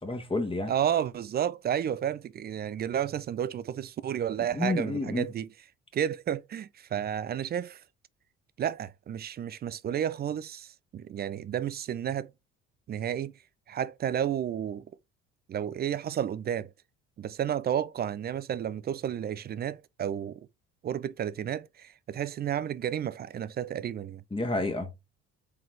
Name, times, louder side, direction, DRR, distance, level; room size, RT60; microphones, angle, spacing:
voice 1, 0.0-0.7 4.5-5.3 24.3-24.9, left 2 dB, 15° left, 1.5 m, -30 dB
voice 2, 0.7-5.5 5.9-7.8 8.6-12.3 12.9-13.3 13.7-14.8 15.5-16.7 17.2-20.4 20.8-24.2, right 9 dB, 25° right, 0.3 m, -31 dB
3.9 x 3.7 x 3.2 m
hypercardioid pair, 55°, 38 cm